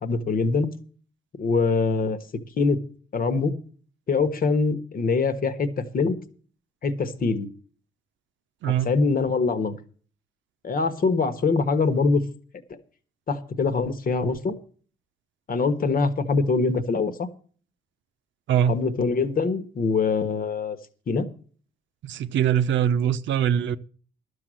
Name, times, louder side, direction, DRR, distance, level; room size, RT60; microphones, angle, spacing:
voice 1, 0.0-0.7 1.4-2.2 2.6-2.8 3.1-3.5 4.1-6.2 6.8-7.5 8.6-9.8 10.6-12.2 13.3-14.5 15.5-17.3 18.7-20.8 21.1-21.3, left 4 dB, 45° left, 1.4 m, -23 dB
voice 2, 18.5-18.8 22.0-23.8, right 9 dB, 70° right, 0.7 m, -22 dB
12.0 x 6.8 x 7.6 m
cardioid pair, 90°, 20 cm